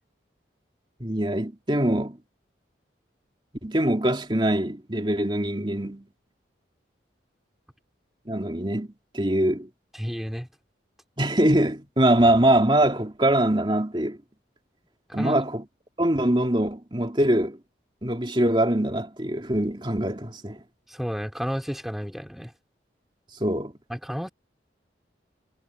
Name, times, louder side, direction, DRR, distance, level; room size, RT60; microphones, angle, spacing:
voice 1, 1.0-2.2 3.6-6.1 8.3-8.9 9.1-9.7 11.2-14.2 15.1-15.6 16.0-17.6 18.0-20.6 23.4-23.7, right 1 dB, 25° right, 2.7 m, -23 dB
voice 2, 9.9-10.5 15.1-15.4 20.9-22.5 23.9-24.3, equal, ahead, 4.0 m, -31 dB
head